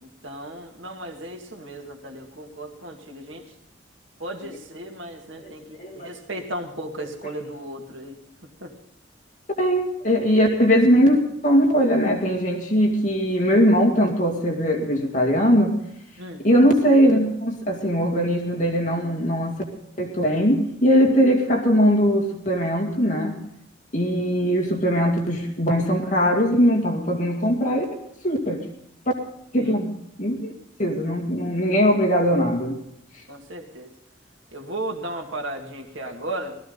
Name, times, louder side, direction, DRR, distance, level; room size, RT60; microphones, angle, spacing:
voice 1, 0.0-3.5 4.2-8.2 8.6-8.7 16.2-16.4 29.6-29.8 33.3-33.9 34.5-36.6, right 1 dB, 85° right, 2 dB, 2.0 m, -35 dB
voice 2, 9.6-11.2 11.4-15.8 16.4-19.6 20.0-23.4 23.9-27.9 28.2-28.6 29.5-30.5 30.8-32.8, equal, 40° left, 1 dB, 2.3 m, -20 dB
18.0 x 14.0 x 4.0 m, 0.75 s
head